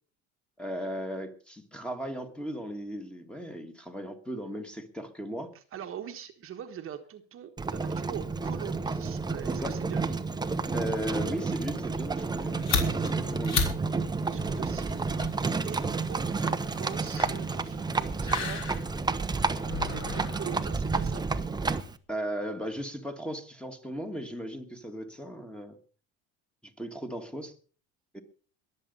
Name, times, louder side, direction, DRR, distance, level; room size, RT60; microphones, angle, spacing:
voice 1, 0.6-5.5 9.6-9.8 10.7-12.7 13.0-13.6 22.1-25.8 26.6-27.5 28.1-28.2, equal, 5° left, 6 dB, 1.9 m, -36 dB
voice 2, 5.5-10.2 14.3-15.0 15.4-18.6 19.8-21.3, right 9 dB, 40° right, 6 dB, 1.4 m, -42 dB
Livestock farm animals working animals, 7.6-22.0, right 4 dB, 10° right, 0.9 m, -30 dB
sound 1, 12.3-21.5, left 5 dB, 50° left, 4.1 m, -36 dB
21.5 x 7.7 x 5.5 m, 0.40 s
supercardioid pair, 115°, 33 cm